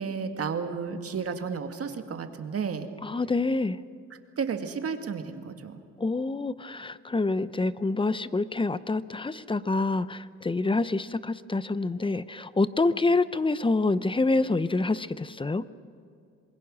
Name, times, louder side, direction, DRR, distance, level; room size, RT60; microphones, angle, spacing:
voice 1, 0.0-2.9 4.1-5.8, right 6 dB, 50° right, 7 dB, 1.9 m, -32 dB
voice 2, 3.0-3.8 6.0-15.7, left 3 dB, 15° left, 15 dB, 0.7 m, -27 dB
27.0 x 21.0 x 6.2 m, 2.5 s
cardioid pair, 90°, 30 cm